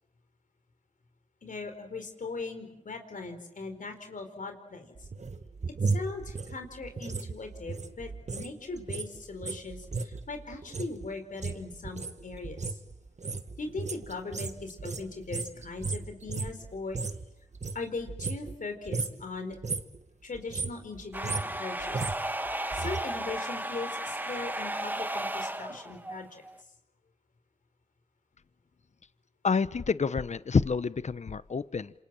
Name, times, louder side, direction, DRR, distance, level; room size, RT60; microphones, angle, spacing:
voice 1, 1.4-5.1 5.8-12.8 13.6-17.0 17.7-19.6 20.2-22.1 22.7-26.4, left 3 dB, 75° left, 6 dB, 4.5 m, -39 dB
sound 1, 4.9-8.5 8.8-17.3 17.5-18.6 18.9-19.2 19.5-20.0 20.3-23.0 23.3-23.4, right 4 dB, 60° right, 1.7 m, -35 dB
sound 2, 21.1-26.6, right 1 dB, 15° right, 1.8 m, -34 dB
voice 2, 29.4-31.9, left 5 dB, 60° left, 16 dB, 0.9 m, -28 dB
27.5 x 26.0 x 7.7 m, 0.85 s
cardioid pair, 40°, 14 cm